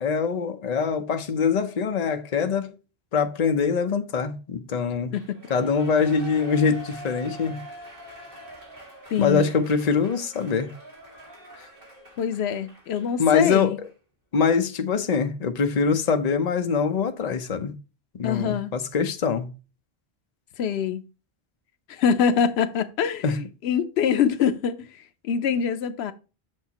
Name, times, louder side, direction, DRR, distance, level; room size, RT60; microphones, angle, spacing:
voice 1, 0.0-2.7 3.1-5.1 5.5-7.6 9.2-10.7 13.2-13.7 14.3-17.7 18.1-19.5 23.2-23.4, left 5 dB, 45° left, 0.8 m, -23 dB
Shout / Cheering, 5.1-13.4 13.8-13.9, right 1 dB, 60° right, 2.1 m, -44 dB
voice 2, 9.1-9.5 12.2-13.8 18.2-18.7 20.6-21.0 21.9-26.1, left 7 dB, 85° left, 0.9 m, -24 dB
7.1 x 6.4 x 2.9 m
omnidirectional pair, 1.0 m